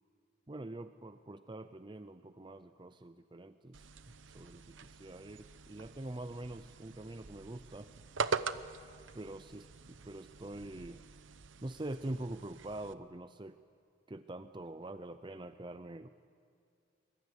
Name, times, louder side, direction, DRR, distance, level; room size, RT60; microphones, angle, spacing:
voice 1, 0.5-3.9 4.3-7.9 9.1-11.0 11.6-13.6 14.1-16.1, right 1 dB, 25° right, 10 dB, 0.6 m, -44 dB
sound 1, 3.7-12.9, right 4 dB, 80° right, 0.8 m, -43 dB
23.5 x 22.5 x 8.2 m, 2.4 s
head